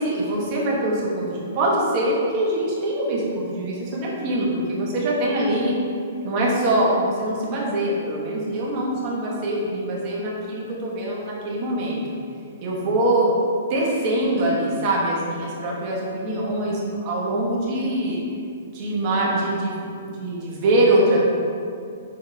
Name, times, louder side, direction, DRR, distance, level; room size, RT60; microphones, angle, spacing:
voice 1, 0.0-5.7 6.2-12.0 12.6-13.3 13.7-18.2 18.7-21.2, right 1 dB, 35° right, -4 dB, 1.5 m, -23 dB
6.9 x 4.6 x 3.6 m, 2.4 s
hypercardioid pair, 155°, 0 cm